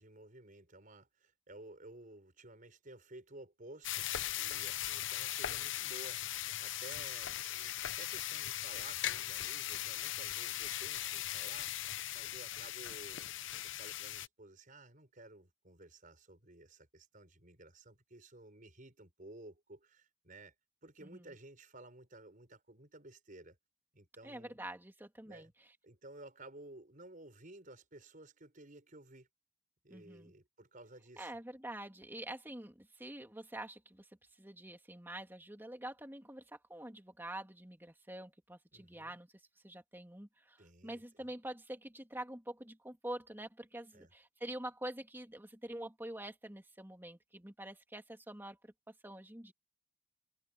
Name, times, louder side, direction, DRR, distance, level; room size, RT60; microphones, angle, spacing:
voice 1, 0.0-6.2 6.6-11.7 12.1-20.5 20.8-23.6 23.9-24.6 25.2-25.5 25.8-29.3 29.8-31.4 38.7-39.2 40.6-41.3 43.9-44.1, right 2 dB, 40° right, 5.4 m, -55 dB
sound 1, 3.8-14.3, left 12 dB, 65° left, 0.7 m, -39 dB
voice 2, 21.0-21.3 24.2-25.5 29.9-30.3 31.2-34.1 34.4-39.3 39.6-48.7 49.0-49.5, right 1 dB, 10° right, 2.8 m, -46 dB
head